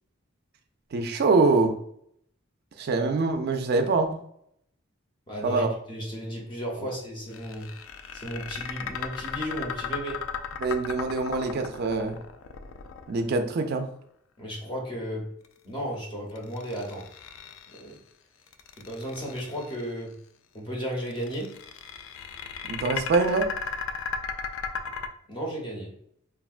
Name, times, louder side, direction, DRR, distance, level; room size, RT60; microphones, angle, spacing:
voice 1, 0.9-1.8 2.8-4.2 5.4-5.7 6.8-6.9 10.6-12.2 13.1-13.9 22.7-23.5, right 3 dB, 50° right, 6 dB, 0.3 m, -24 dB
voice 2, 5.3-7.8 8.1-10.3 14.4-15.3 15.6-17.1 17.7-18.0 18.8-20.2 20.5-21.6 25.3-26.0, equal, 25° left, -2 dB, 0.6 m, -34 dB
sound 1, 7.3-13.5 16.4-17.9 18.5-19.8 21.1-25.1, left 6 dB, 75° left, 0.3 m, -36 dB
3.4 x 2.2 x 2.4 m, 0.69 s
head